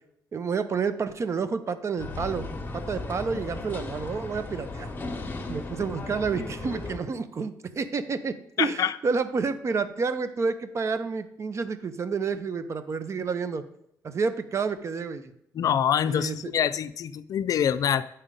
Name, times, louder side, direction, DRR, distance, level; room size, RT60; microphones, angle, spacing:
voice 1, 0.3-2.5 2.7-4.9 5.5-13.6 14.0-15.3 16.1-16.3, right 5 dB, 45° right, 11 dB, 0.7 m, -29 dB
sound 1, 2.0-7.0, left 2 dB, 30° left, 1.2 m, -36 dB
voice 2, 8.6-9.0 15.5-18.1, left 9 dB, 65° left, 14 dB, 0.4 m, -25 dB
8.7 x 4.4 x 5.1 m, 0.75 s
cardioid pair, 75°, 7 cm